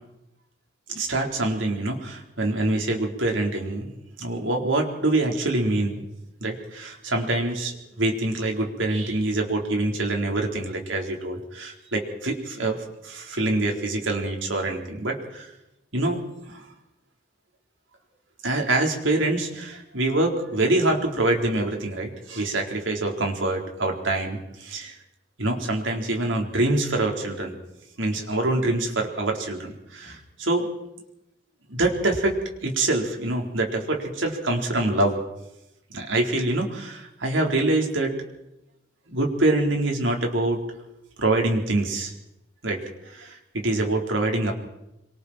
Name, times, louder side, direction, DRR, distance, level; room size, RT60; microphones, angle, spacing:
voice 1, 0.9-6.0 6.4-12.8 13.0-15.5 15.9-16.2 16.5-16.7 18.4-25.0 25.4-27.6 28.0-30.7 31.7-35.2 35.9-38.1 39.1-40.6 41.2-42.1 42.6-44.5, right 2 dB, 75° right, 1 dB, 4.3 m, -25 dB
26.0 x 24.5 x 4.5 m, 0.90 s
head